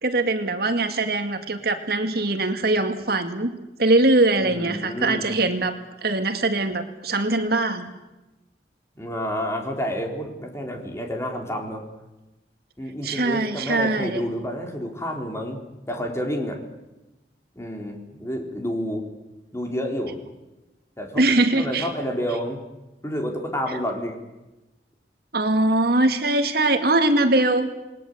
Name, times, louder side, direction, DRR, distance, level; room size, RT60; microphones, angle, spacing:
voice 1, 0.0-7.9 13.0-14.2 21.1-21.9 23.7-23.8 25.3-27.7, right 2 dB, 60° right, 7 dB, 2.2 m, -22 dB
voice 2, 4.4-5.3 9.0-11.8 12.8-15.6 15.9-16.6 17.5-19.1 19.5-20.2 21.0-21.2 21.6-22.6 23.0-24.2, equal, 15° left, 2 dB, 3.9 m, -29 dB
28.0 x 20.5 x 8.1 m, 1.0 s
head